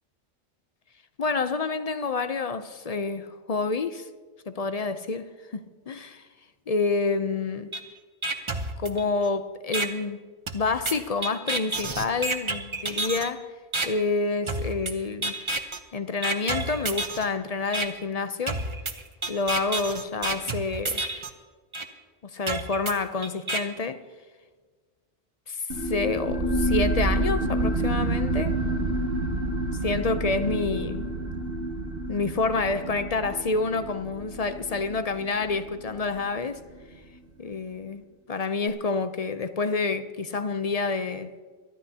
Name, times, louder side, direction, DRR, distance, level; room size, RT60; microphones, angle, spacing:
voice 1, 1.2-4.1 4.5-5.6 5.9-6.3 6.7-7.7 8.8-10.2 10.5-13.5 13.8-15.3 15.9-18.6 19.3-21.1 22.2-24.0 25.5-28.6 29.8-31.1 32.1-36.6 37.4-41.3, left 4 dB, 45° left, 0.5 m, -28 dB
sound 1, 7.7-7.8 8.2-9.3 9.7-9.9 10.5-13.3 13.7-13.9 14.5-14.9 15.2-15.8 16.2-17.2 17.7-17.9 18.5-21.3 21.7-21.8 22.5-23.6, right 3 dB, 30° right, 0.8 m, -29 dB
sound 2, 25.7-36.8, right 2 dB, 55° right, 1.3 m, -29 dB
23.0 x 13.0 x 2.8 m
omnidirectional pair, 1.2 m